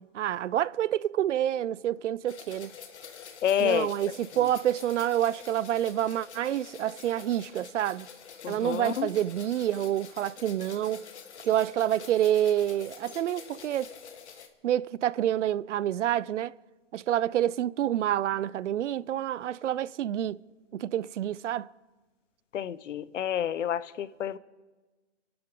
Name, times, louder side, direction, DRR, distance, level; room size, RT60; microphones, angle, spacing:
voice 1, 0.0-2.7 3.6-8.1 8.5-11.0 11.4-13.9 14.6-16.6 16.9-20.4 20.7-21.7, right 11 dB, 75° right, 0.5 m, -28 dB
sound 1, 2.3-14.5, left 7 dB, 65° left, 1.9 m, -47 dB
voice 2, 3.4-3.9 8.4-9.1 22.5-24.4, left 9 dB, 85° left, 0.9 m, -29 dB
27.5 x 12.0 x 3.9 m
hypercardioid pair, 170°, 36 cm